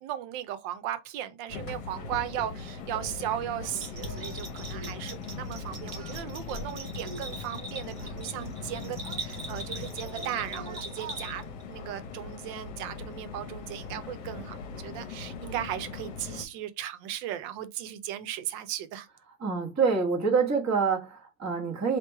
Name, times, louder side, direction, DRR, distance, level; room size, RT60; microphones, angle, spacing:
voice 1, 0.0-14.5 14.8-19.1, right 11 dB, 90° right, 1.3 m, -36 dB
sound 1, 1.5-16.4, left 4 dB, 70° left, 1.3 m, -40 dB
Singing, 3.4-3.7 4.1-4.5 4.7-5.0 5.8-7.4 8.0-9.8 10.0-11.2, right 5 dB, 60° right, 1.4 m, -47 dB
Bell, 3.7-11.6, right 2 dB, 40° right, 1.0 m, -42 dB
voice 2, 19.4-22.0, right 5 dB, 15° right, 0.7 m, -26 dB
3.3 x 2.9 x 4.4 m
omnidirectional pair, 2.0 m